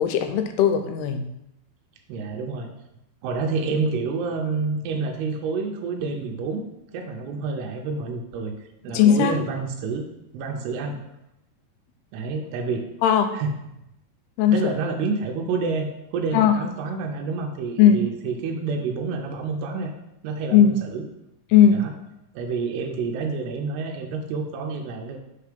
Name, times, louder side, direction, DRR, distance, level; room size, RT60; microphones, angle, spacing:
voice 1, 0.0-1.3 8.9-9.4 13.0-13.3 14.4-14.7 16.3-16.6 17.8-18.1 20.5-20.8 21.5-21.9, left 8 dB, 85° left, 8 dB, 2.6 m, -18 dB
voice 2, 2.1-2.7 3.2-6.6 6.9-8.5 8.8-10.0 10.3-11.0 12.1-12.9 13.3-13.6 14.5-19.9 20.2-21.1 21.7-21.9 22.4-25.2, right 4 dB, 90° right, 3 dB, 2.7 m, -28 dB
5.4 x 4.5 x 5.1 m, 0.85 s
omnidirectional pair, 4.6 m